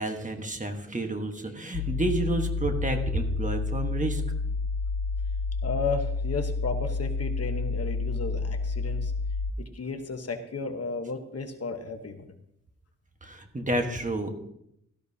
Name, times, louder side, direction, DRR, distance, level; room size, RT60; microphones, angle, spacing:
voice 1, 0.0-4.2 13.2-14.3, right 1 dB, 25° right, 5 dB, 1.3 m, -30 dB
sound 1, 1.7-9.5, left 3 dB, 75° left, 0.5 m, -29 dB
voice 2, 5.6-9.1 9.7-12.2, left 4 dB, 55° left, 6 dB, 1.1 m, -33 dB
17.0 x 13.0 x 2.8 m, 0.78 s
wide cardioid pair, 120°, 30 cm